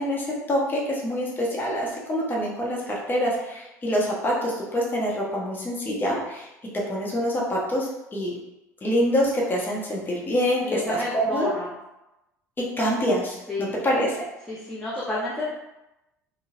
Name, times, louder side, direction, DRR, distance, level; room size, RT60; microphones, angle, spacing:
voice 1, 0.0-6.5 6.7-8.3 8.8-11.5 12.6-14.2, equal, 20° left, -4 dB, 1.0 m, -26 dB
voice 2, 10.6-11.7 13.5-13.8 14.5-15.4, left 2 dB, 5° left, -8 dB, 0.7 m, -30 dB
3.8 x 2.2 x 2.5 m, 0.95 s
figure-of-eight pair, 65°, 9 cm